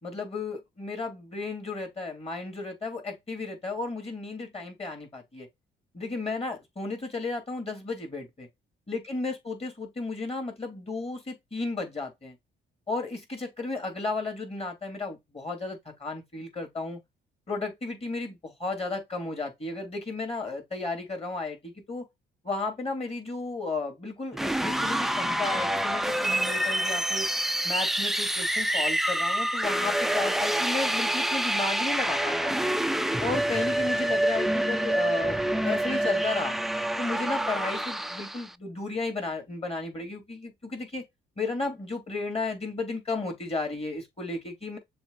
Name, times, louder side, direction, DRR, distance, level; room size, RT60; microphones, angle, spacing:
voice 1, 0.0-5.5 5.9-8.5 8.9-12.4 12.9-17.0 17.5-22.0 22.4-27.3 27.6-32.6 33.2-35.4 35.6-36.6 37.0-41.0 41.4-44.8, left 3 dB, 30° left, 3.5 m, -33 dB
sound 1, 24.3-38.5, right 1 dB, ahead, 0.4 m, -27 dB
6.9 x 3.2 x 4.2 m
cardioid pair, 90°, 20 cm